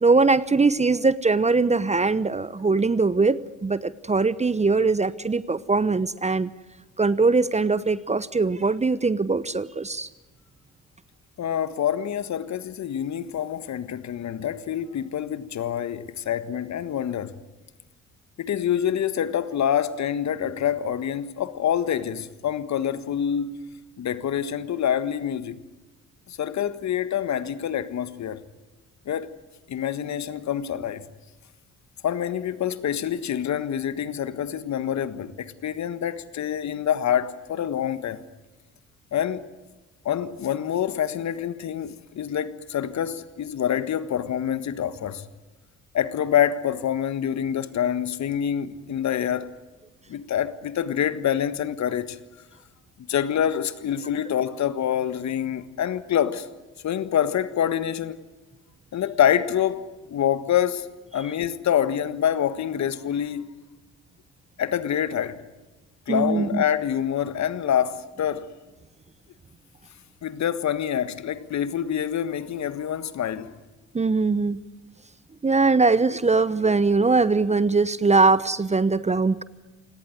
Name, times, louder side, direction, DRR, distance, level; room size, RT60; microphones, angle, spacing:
voice 1, 0.0-6.5 7.0-10.1 66.1-66.6 73.9-74.6 75.4-79.4, right 3 dB, 20° right, 0.9 m, -21 dB
voice 2, 11.4-17.4 18.4-23.7 24.0-25.6 26.3-28.4 29.1-29.3 29.7-31.1 32.0-38.2 39.1-39.4 40.0-45.2 45.9-49.5 50.1-52.2 53.1-56.5 56.8-58.2 58.9-60.9 61.1-63.5 64.6-65.4 66.1-68.5 70.2-73.5, left 9 dB, 50° left, 1.6 m, -26 dB
28.5 x 18.0 x 9.6 m
hypercardioid pair, 50°, 35 cm